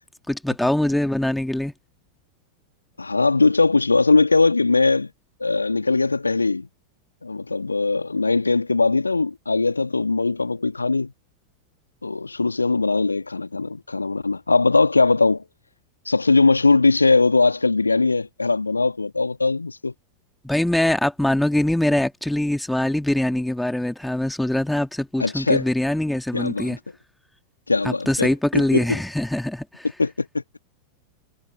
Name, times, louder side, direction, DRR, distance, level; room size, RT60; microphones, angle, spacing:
voice 1, 0.3-1.7 20.4-26.8 27.8-30.0, left 1 dB, 5° left, 2.3 m, -23 dB
voice 2, 3.0-5.1 5.4-6.7 7.2-11.1 12.0-15.4 16.1-19.9 25.2-25.6 26.3-26.8 27.7-28.8 30.0-30.4, left 3 dB, 80° left, 2.1 m, -20 dB
figure-of-eight pair, 90°, 0 cm